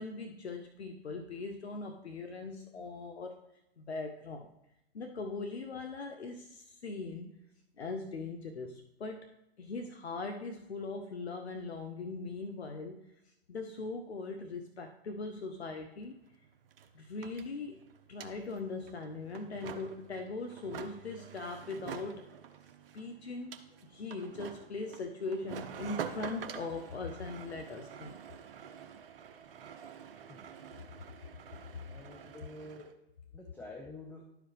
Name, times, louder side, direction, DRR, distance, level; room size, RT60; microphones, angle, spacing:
voice 1, 0.0-3.4 3.8-4.5 4.9-7.4 7.8-9.3 9.6-16.2 16.9-17.8 18.1-22.3 22.9-23.6 23.8-28.2, left 3 dB, 90° left, 5 dB, 0.6 m, -40 dB
sound 1, 16.0-16.1 16.3-32.9, right 8 dB, 60° right, 0.8 m, -47 dB
voice 2, 31.9-33.0 33.3-34.3, left 2 dB, 5° left, 0 dB, 0.7 m, -48 dB
11.5 x 4.9 x 3.2 m, 0.85 s
figure-of-eight pair, 110°, 31 cm